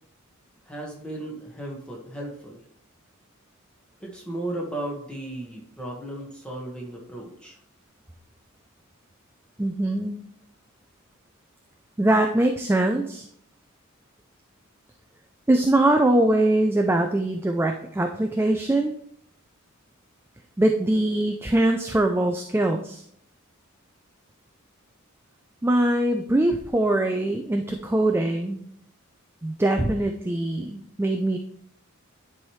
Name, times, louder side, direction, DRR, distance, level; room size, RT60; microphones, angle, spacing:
voice 1, 0.6-2.6 4.0-7.6, right 1 dB, 5° left, -2 dB, 1.5 m, -35 dB
voice 2, 9.6-10.2 12.0-13.2 15.5-18.9 20.6-23.0 25.6-28.6 29.4-31.4, right 1 dB, 10° right, 4 dB, 0.4 m, -22 dB
10.0 x 4.7 x 3.2 m, 0.69 s
head